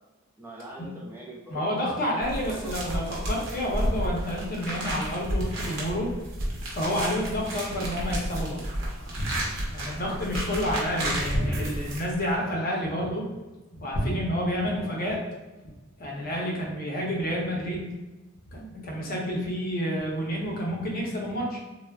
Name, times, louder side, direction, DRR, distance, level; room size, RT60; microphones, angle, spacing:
voice 1, 0.4-1.7 2.4-3.0 10.0-10.3, right 1 dB, 10° right, -3 dB, 0.3 m, -42 dB
voice 2, 1.5-6.1 6.7-8.6 9.7-13.3 13.7-15.2 16.0-17.8 18.5-21.6, equal, 45° left, -2 dB, 0.6 m, -29 dB
sound 1, 2.2-12.4, right 1 dB, 65° right, 0.8 m, -32 dB
sound 2, 9.2-9.9 11.3-12.3 13.9-15.0 15.3-15.5, equal, 90° left, 1.0 m, -32 dB
3.3 x 2.1 x 2.2 m, 1.1 s
head